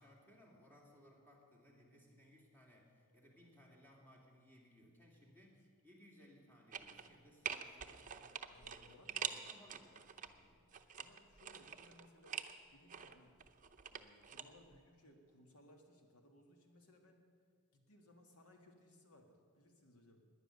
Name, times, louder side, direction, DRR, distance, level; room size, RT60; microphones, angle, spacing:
voice 1, 0.0-10.6, left 1 dB, 10° left, -2 dB, 2.6 m, -64 dB
sound 1, 6.7-7.2 7.5-10.3 10.7-12.5 12.9-14.4 14.7-14.8, right 8 dB, 35° right, 0.7 m, -45 dB
voice 2, 8.5-9.7 10.9-12.4 12.7-13.4 13.9-17.2 17.7-20.3, left 1 dB, 80° left, 3 dB, 1.9 m, -65 dB
18.0 x 10.5 x 6.7 m, 2.1 s
head